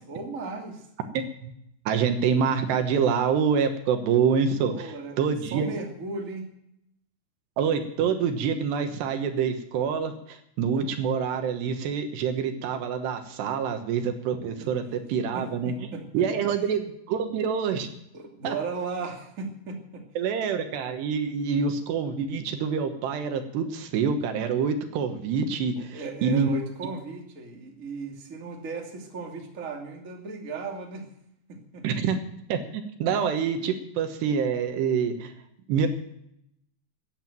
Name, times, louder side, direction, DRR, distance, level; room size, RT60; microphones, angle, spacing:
voice 1, 0.1-0.9 4.7-5.2 5.5-6.5 15.3-16.5 18.1-20.0 25.9-31.1 31.5-31.8, right 4 dB, 25° right, 1 dB, 2.0 m, -36 dB
voice 2, 1.9-5.7 7.6-15.7 16.1-17.9 18.4-18.5 20.2-26.5 31.8-32.2 32.5-35.3 35.7-35.9, right 6 dB, 75° right, 7 dB, 3.2 m, -26 dB
14.5 x 9.1 x 9.1 m, 0.76 s
omnidirectional pair, 5.1 m